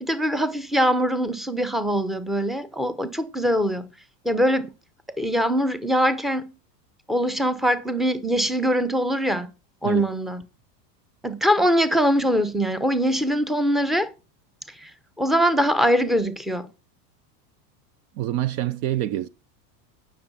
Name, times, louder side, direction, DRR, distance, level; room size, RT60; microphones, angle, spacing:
voice 1, 0.0-3.9 4.2-4.7 5.2-6.5 7.1-9.5 9.8-10.4 11.2-14.1 14.7-14.9 15.2-16.7, equal, ahead, 0.8 m, -22 dB
voice 2, 18.1-19.3, right 13 dB, 45° right, 0.6 m, -26 dB
9.5 x 6.4 x 5.5 m
supercardioid pair, 125°, 49 cm